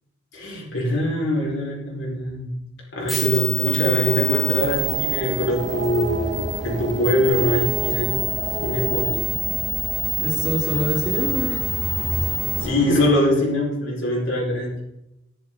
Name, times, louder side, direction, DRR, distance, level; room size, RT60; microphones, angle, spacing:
voice 1, 0.3-2.6 2.9-6.4 6.6-8.2 8.6-9.3 12.6-14.8, left 1 dB, 65° left, -3 dB, 4.7 m, -23 dB
sound 1, 3.0-12.6, right 3 dB, ahead, 3.6 m, -26 dB
sound 2, 4.0-9.2, right 2 dB, 40° right, 1.8 m, -33 dB
sound 3, 4.7-13.1, right 1 dB, 60° right, 1.9 m, -34 dB
voice 2, 10.2-11.7, equal, 20° right, -2 dB, 3.0 m, -25 dB
14.5 x 11.0 x 3.8 m, 0.86 s
head